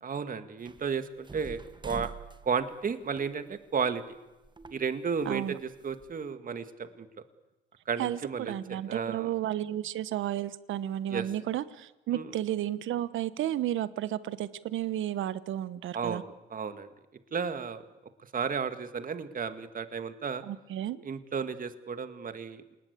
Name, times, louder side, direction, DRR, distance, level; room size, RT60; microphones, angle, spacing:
voice 1, 0.0-2.1 2.4-4.0 4.7-7.1 7.9-9.3 11.1-11.3 12.1-12.2 15.9-16.2 16.5-16.9 17.3-17.8 18.3-20.4 21.0-22.8, right 6 dB, 45° right, 10 dB, 2.2 m, -33 dB
sound 1, 0.6-4.2 4.4-6.1, right 4 dB, 25° right, 1.4 m, -46 dB
voice 2, 5.2-5.6 8.0-16.2 20.4-21.0, right 12 dB, 80° right, 15 dB, 1.2 m, -32 dB
27.5 x 19.5 x 8.5 m, 1.0 s
cardioid pair, 90°, 20 cm